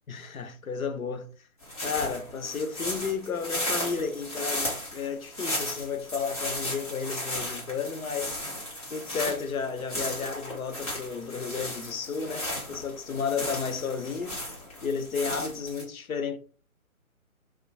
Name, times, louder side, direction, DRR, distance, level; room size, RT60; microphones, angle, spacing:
voice 1, 0.1-1.3 1.8-8.6 8.9-14.5 14.8-16.4, left 5 dB, 75° left, 0.6 m, -32 dB
sound 1, 1.6-15.8, left 1 dB, 25° left, 0.9 m, -35 dB
2.5 x 2.1 x 2.6 m
figure-of-eight pair, 145°, 43 cm